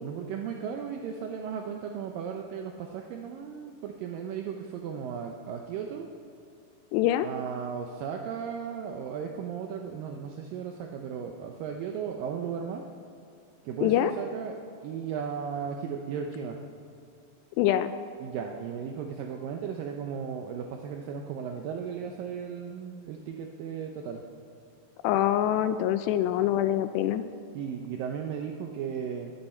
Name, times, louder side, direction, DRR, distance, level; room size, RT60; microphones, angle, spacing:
voice 1, 0.0-6.1 7.2-12.9 13.6-16.6 18.2-24.2 27.5-29.3, right 7 dB, 80° right, 3 dB, 2.0 m, -36 dB
voice 2, 6.9-7.3 13.8-14.1 17.6-17.9 25.0-27.2, left 12 dB, 85° left, 11 dB, 2.6 m, -24 dB
21.0 x 13.5 x 4.4 m, 2.6 s
omnidirectional pair, 5.0 m